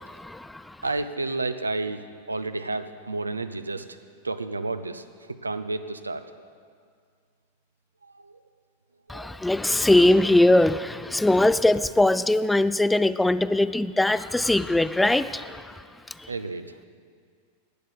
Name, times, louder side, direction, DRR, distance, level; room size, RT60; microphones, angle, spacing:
voice 1, 0.0-0.8 9.1-16.3, left 1 dB, 5° left, 15 dB, 0.3 m, -21 dB
voice 2, 0.8-2.0 2.3-4.0 4.2-6.2 8.0-8.4 9.1-9.4 16.3-16.8, right 2 dB, 80° right, 10 dB, 0.6 m, -31 dB
12.0 x 9.0 x 8.2 m, 2.1 s
figure-of-eight pair, 90°, 0 cm